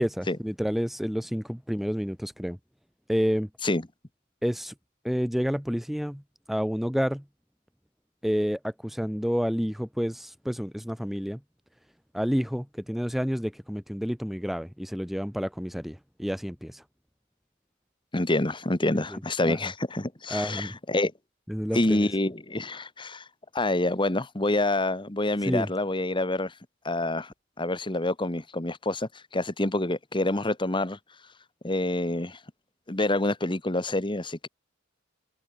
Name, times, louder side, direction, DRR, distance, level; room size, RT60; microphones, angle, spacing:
voice 1, 0.0-2.6 3.1-3.5 4.4-4.7 5.0-6.2 6.5-7.2 8.2-11.4 12.1-16.8 19.1-19.7 20.3-20.7 21.5-22.1 25.4-25.7, equal, ahead, 0.7 m, -29 dB
voice 2, 18.1-21.1 21.7-23.2 23.5-26.5 26.8-31.0 31.6-32.4 32.9-34.5, left 2 dB, 25° left, 1.4 m, -27 dB
head